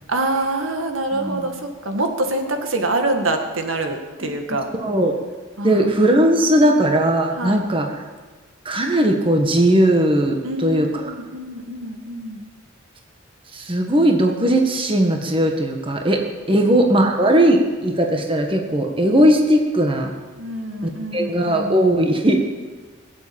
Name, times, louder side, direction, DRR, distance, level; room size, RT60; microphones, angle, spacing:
voice 1, 0.1-4.7 5.6-5.8 6.3-6.7 7.4-7.6 10.4-12.4 16.5-17.1 20.4-21.9, right 2 dB, 85° right, 4 dB, 1.9 m, -26 dB
voice 2, 1.1-1.5 4.8-5.1 5.6-7.8 8.6-10.9 13.5-16.2 16.5-20.1 21.1-22.4, right 1 dB, 25° right, 2 dB, 1.5 m, -18 dB
19.5 x 7.7 x 8.7 m, 1.4 s
head